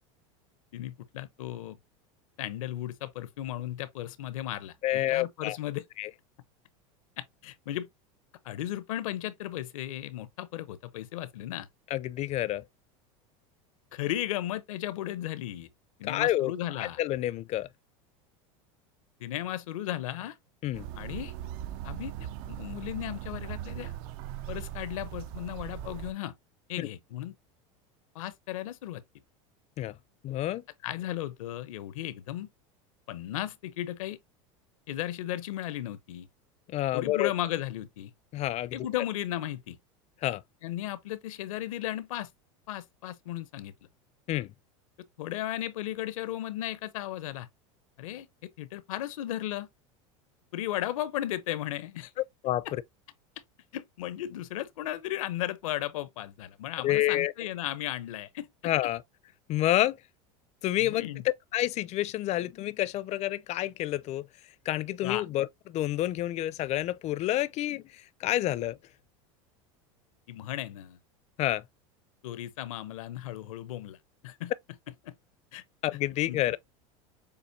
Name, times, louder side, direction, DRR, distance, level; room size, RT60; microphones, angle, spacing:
voice 1, 0.7-1.8 2.4-5.8 7.2-7.9 8.4-11.7 13.9-15.7 16.0-17.0 19.2-20.4 21.0-21.3 21.8-23.9 24.5-26.3 26.7-27.3 28.1-29.0 30.8-32.5 33.1-34.2 34.9-36.3 36.9-38.1 38.7-39.8 40.6-42.3 42.7-43.7 45.2-47.5 48.0-48.3 48.6-49.7 50.5-52.1 52.6-52.7 53.7-58.7 60.8-61.2 65.0-65.2 70.3-71.0 72.2-74.0 74.2-74.5 75.0-75.1 75.5-75.6 76.3-76.4, left 13 dB, 85° left, 0.8 m, -35 dB
voice 2, 4.8-5.6 6.0-6.1 11.9-12.6 16.0-17.7 20.6-20.9 26.8-26.9 29.8-29.9 30.2-30.6 36.7-37.3 38.3-38.9 40.2-40.4 44.3-44.5 52.4-52.8 56.8-57.3 58.6-59.0 59.5-60.0 60.6-64.3 64.7-68.8 71.4-71.6 75.8-76.6, left 14 dB, 40° left, 0.5 m, -29 dB
sound 1, 20.7-26.1, right 12 dB, 60° right, 0.5 m, -39 dB
6.9 x 2.6 x 2.7 m
supercardioid pair, 110°, 17 cm